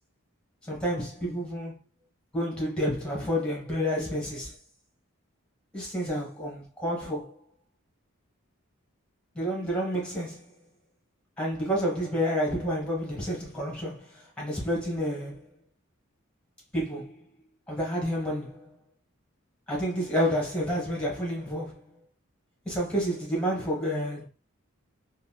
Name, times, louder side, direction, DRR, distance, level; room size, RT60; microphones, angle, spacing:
voice 1, 0.7-1.8 2.3-4.5 5.7-7.4 9.3-10.4 11.4-15.4 16.7-17.2 17.7-18.7 19.7-21.9 22.6-24.2, equal, 5° left, 1.1 m, -29 dB
4.0 x 2.0 x 2.2 m
head